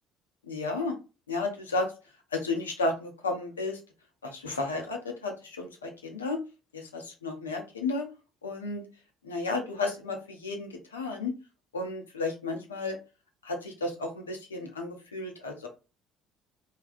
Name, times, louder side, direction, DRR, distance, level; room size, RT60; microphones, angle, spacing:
voice 1, 0.5-0.9 1.3-1.9 2.3-3.8 4.2-6.4 6.7-8.0 8.4-8.8 9.2-11.3 11.7-13.0 13.4-15.7, left 3 dB, 90° left, 2 dB, 0.7 m, -33 dB
3.4 x 2.2 x 2.6 m, 0.30 s
hypercardioid pair, 55°, 0 cm